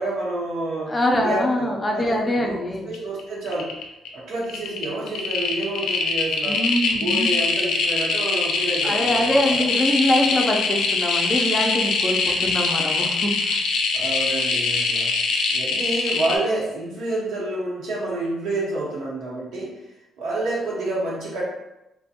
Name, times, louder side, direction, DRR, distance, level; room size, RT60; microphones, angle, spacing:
voice 1, 0.0-3.7 4.1-6.6 6.9-9.6 12.3-12.5 13.9-15.1 15.5-19.7 20.2-21.4, right 2 dB, 85° right, -5 dB, 0.9 m, -29 dB
voice 2, 0.9-2.9 6.5-7.3 8.8-13.6, left 1 dB, 25° left, 1 dB, 0.4 m, -23 dB
sound 1, 2.9-3.2 3.5-4.1 4.4-16.3, left 4 dB, 80° left, 0.4 m, -23 dB
2.4 x 2.1 x 2.7 m, 0.91 s
cardioid pair, 90°, 0 cm